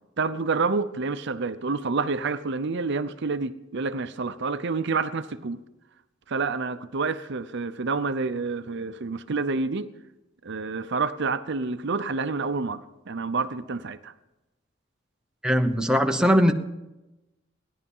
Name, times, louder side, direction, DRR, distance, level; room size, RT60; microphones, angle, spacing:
voice 1, 0.2-5.6 6.3-9.9 10.4-14.1, right 4 dB, 60° right, 0.7 m, -28 dB
voice 2, 15.4-16.5, equal, 5° right, 0.9 m, -20 dB
17.0 x 11.0 x 5.5 m
head